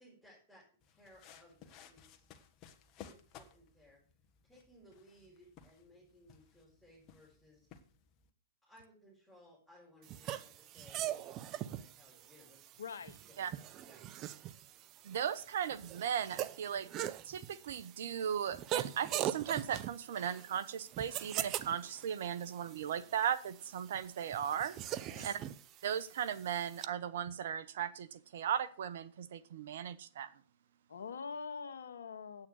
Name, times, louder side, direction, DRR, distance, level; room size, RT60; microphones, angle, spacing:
voice 1, 0.0-2.2 3.0-4.0 4.4-7.7 8.6-12.8 13.4-14.0, equal, ahead, -6 dB, 5.9 m, -62 dB
sound 1, 0.8-8.3, left 8 dB, 35° left, 1.5 m, -58 dB
sound 2, 10.1-26.9, right 12 dB, 35° right, 0.7 m, -42 dB
voice 2, 12.8-13.2 25.1-25.3 30.9-32.5, left 5 dB, 80° left, 9 dB, 1.4 m, -44 dB
voice 3, 15.0-16.9 17.2-24.7 25.2-25.4 25.8-30.3, right 9 dB, 65° right, 15 dB, 1.1 m, -37 dB
8.9 x 8.8 x 6.5 m, 0.40 s
hypercardioid pair, 120°, 0 cm